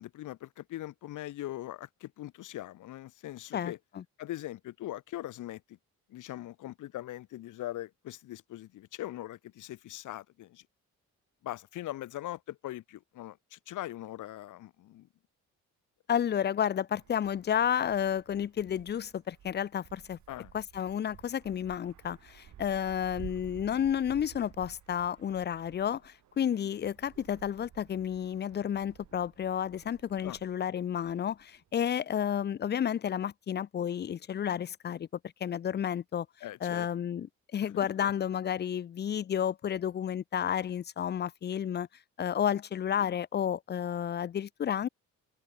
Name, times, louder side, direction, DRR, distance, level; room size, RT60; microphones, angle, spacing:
voice 1, 0.0-3.8 4.2-5.8 6.1-10.6 11.4-15.1 20.3-20.5 30.2-30.4 36.4-36.9 37.6-38.1 43.0-43.1, left 14 dB, 80° left, 2.4 m, -41 dB
voice 2, 3.5-4.0 16.1-20.2 20.5-35.1 35.4-36.3 36.6-37.3 37.5-41.9 42.2-44.9, left 9 dB, 35° left, 0.5 m, -31 dB
Wind, 17.0-31.9, right 11 dB, 70° right, 5.7 m, -54 dB
cardioid pair, 90°, 30 cm